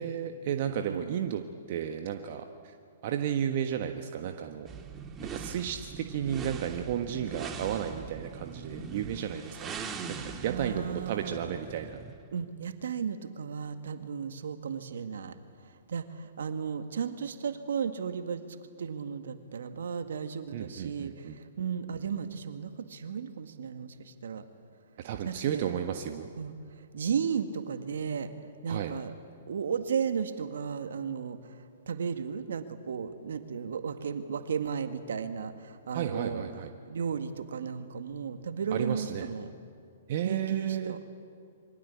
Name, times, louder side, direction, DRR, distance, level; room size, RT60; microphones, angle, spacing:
voice 1, 0.0-1.4 1.7-2.7 3.0-4.7 5.3-9.7 10.4-12.0 20.5-21.3 25.0-26.3 28.7-28.9 35.9-36.7 38.7-39.3 40.1-41.0, right 9 dB, 50° right, 6 dB, 1.4 m, -33 dB
voice 2, 0.8-1.2 10.5-11.4 12.3-15.4 15.6-18.5 18.8-24.4 25.2-25.8 26.4-28.3 28.6-29.1 29.5-36.4 36.9-39.5 40.2-41.0, right 6 dB, 70° right, 8 dB, 2.0 m, -34 dB
sound 1, 4.7-12.2, right 5 dB, 20° right, 2.2 m, -41 dB
26.5 x 24.0 x 8.5 m, 2.4 s
hypercardioid pair, 120°, 0 cm